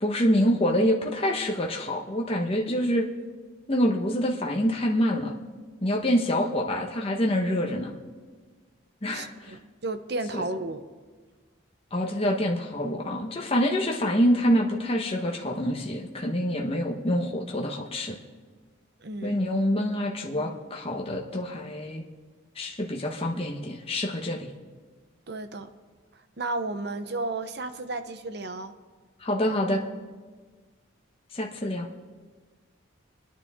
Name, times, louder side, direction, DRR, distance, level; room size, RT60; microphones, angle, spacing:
voice 1, 0.0-3.1 3.7-5.3 5.8-7.9 9.0-9.6 10.3-10.4 11.9-18.2 19.2-22.0 22.6-24.5 29.2-29.8 31.3-31.9, equal, 30° left, 0 dB, 1.2 m, -26 dB
voice 2, 9.1-10.8 19.0-19.4 25.3-25.7 26.4-28.7, right 2 dB, 55° right, 10 dB, 0.9 m, -33 dB
27.0 x 9.8 x 3.7 m, 1.4 s
head